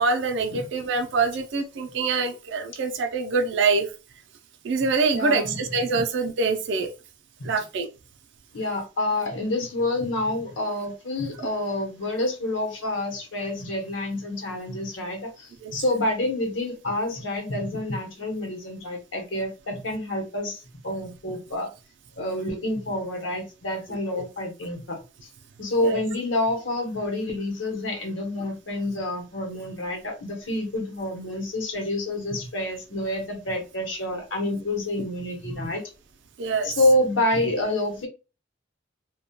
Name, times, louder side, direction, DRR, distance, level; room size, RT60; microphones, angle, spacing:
voice 1, 0.0-3.9 4.6-6.9 7.4-7.9 15.6-15.7 25.8-26.0 36.4-36.7, right 4 dB, 65° right, 0.4 m, -25 dB
voice 2, 4.8-5.5 7.4-7.5 8.5-21.7 22.2-25.3 25.6-35.8 36.6-38.1, left 1 dB, 80° left, 0.9 m, -28 dB
2.2 x 2.1 x 2.7 m
head